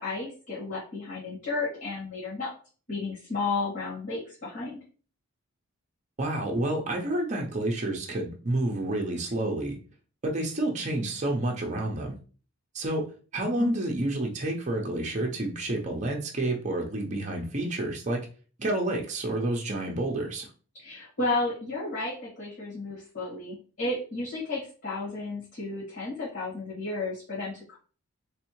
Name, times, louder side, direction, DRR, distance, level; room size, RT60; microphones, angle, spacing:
voice 1, 0.0-2.5 2.9-4.7 13.6-13.7 20.7-27.8, left 3 dB, 55° left, -8 dB, 1.8 m, -33 dB
voice 2, 6.2-9.8 10.2-12.2 12.7-13.1 13.3-18.2 18.6-20.5, right 1 dB, 30° right, 0 dB, 0.6 m, -29 dB
3.4 x 3.3 x 3.0 m, 0.39 s
head